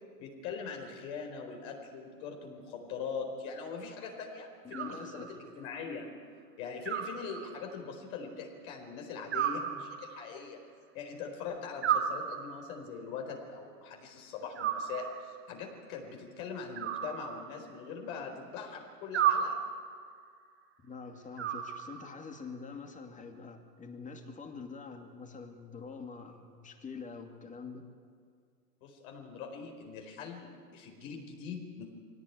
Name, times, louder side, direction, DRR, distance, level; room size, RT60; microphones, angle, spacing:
voice 1, 0.2-6.1 6.6-10.6 10.9-19.6 28.8-31.9, left 5 dB, 50° left, 2 dB, 4.5 m, -42 dB
voice 2, 4.6-5.3 20.8-27.8, left 5 dB, 15° left, 5 dB, 2.5 m, -45 dB
Animal, 4.7-5.6 6.8-7.9 9.3-10.4 11.8-12.8 14.6-15.5 16.8-17.9 19.1-20.1 21.4-22.3, right 8 dB, 25° right, 2.1 m, -34 dB
22.5 x 17.5 x 9.6 m, 2.1 s
hypercardioid pair, 125°, 49 cm